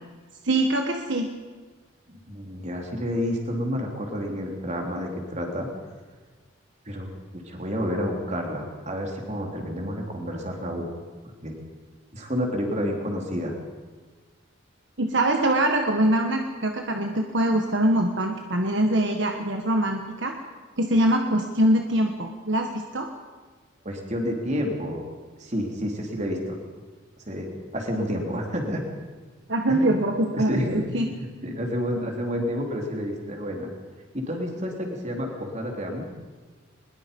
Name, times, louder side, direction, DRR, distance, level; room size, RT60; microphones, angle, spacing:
voice 1, 0.4-1.3 15.0-20.3 20.8-23.1 29.5-31.1, right 1 dB, 60° right, 3 dB, 1.4 m, -23 dB
voice 2, 2.1-5.7 6.8-7.1 7.4-10.9 11.4-11.5 12.1-13.5 23.8-25.0 25.4-26.6 27.3-27.5 27.7-28.8 29.7-30.0 30.4-33.7 34.1-36.1, equal, 35° right, 1 dB, 3.5 m, -29 dB
22.5 x 21.5 x 5.4 m, 1.4 s
head